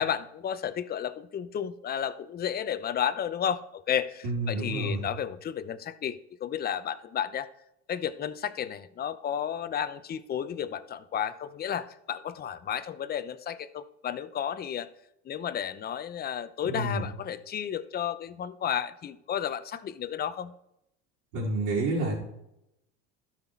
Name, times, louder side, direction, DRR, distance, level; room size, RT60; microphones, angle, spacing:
voice 1, 0.0-7.5 7.9-14.9 15.2-20.5, left 9 dB, 30° left, 12 dB, 0.7 m, -32 dB
voice 2, 4.2-5.1 16.6-17.1 21.3-22.2, right 2 dB, 70° right, -6 dB, 3.7 m, -29 dB
12.5 x 5.9 x 4.6 m, 0.81 s
supercardioid pair, 110°, 33 cm